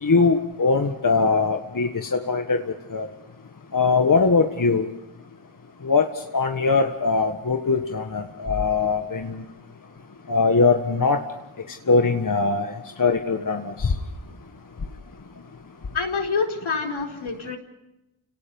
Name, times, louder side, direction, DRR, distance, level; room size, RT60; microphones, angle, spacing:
voice 1, 0.0-2.6 2.9-3.1 3.7-4.8 5.8-6.1 6.3-9.4 10.3-11.2 11.9-12.7 13.0-13.9, left 4 dB, 40° left, 4 dB, 1.7 m, -21 dB
voice 2, 15.9-17.6, left 4 dB, 70° left, 2 dB, 4.6 m, -26 dB
29.0 x 18.5 x 5.4 m, 0.92 s
cardioid pair, 45°, 50 cm